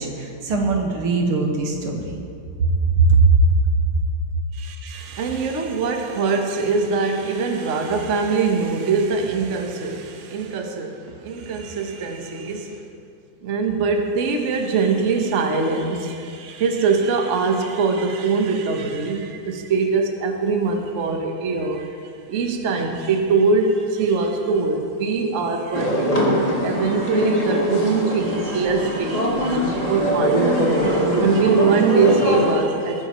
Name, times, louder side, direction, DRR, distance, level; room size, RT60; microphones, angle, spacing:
voice 1, 0.0-2.2 2.6-3.2, right 4 dB, 90° right, 1 dB, 2.4 m, -21 dB
voice 2, 4.6-11.0 11.2-12.8 13.4-21.9 22.3-33.1, right 4 dB, 45° right, 3 dB, 1.1 m, -22 dB
sound 1, 25.7-32.5, equal, 20° left, 1.7 m, -22 dB
20.5 x 9.8 x 3.0 m, 2.4 s
omnidirectional pair, 2.3 m